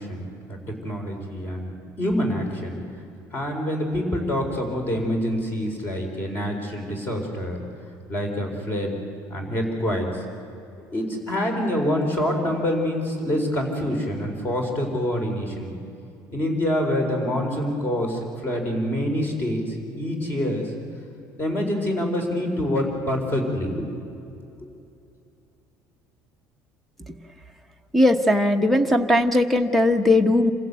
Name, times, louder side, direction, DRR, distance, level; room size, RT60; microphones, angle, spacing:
voice 1, 0.0-2.8 3.3-7.6 8.1-8.9 9.3-10.2 10.9-15.7 16.3-20.7 21.4-23.9 24.6-24.7, equal, 25° left, 3 dB, 4.3 m, -26 dB
voice 2, 27.9-30.5, left 1 dB, ahead, 8 dB, 1.1 m, -19 dB
27.0 x 15.5 x 8.4 m, 2.7 s
cardioid pair, 160°, 7 cm